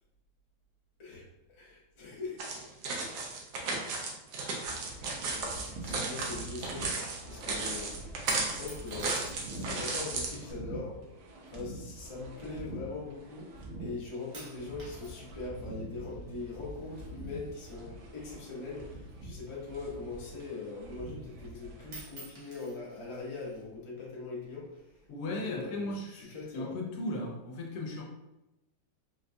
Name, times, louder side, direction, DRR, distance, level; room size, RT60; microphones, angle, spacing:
voice 1, 1.0-2.6 5.0-5.4 5.8-7.9 8.4-9.2 9.5-11.0 11.5-24.8 25.3-26.7, left 3 dB, 35° left, -5 dB, 0.4 m, -42 dB
sound 1, 2.4-10.3, right 3 dB, 85° right, 1.3 m, -34 dB
sound 2, 4.6-22.0, right 1 dB, 70° right, 0.7 m, -46 dB
sound 3, 8.3-9.7 10.6-11.0 11.9-13.2 13.6-14.0 14.3-18.4 18.7-20.4 20.8-20.9 21.2-21.6 21.8-23.7 24.4-25.0, right 2 dB, 55° right, 1.2 m, -53 dB
voice 2, 25.1-28.0, left 1 dB, 75° left, 1 dB, 1.1 m, -36 dB
4.0 x 2.2 x 2.5 m, 0.94 s
omnidirectional pair, 1.8 m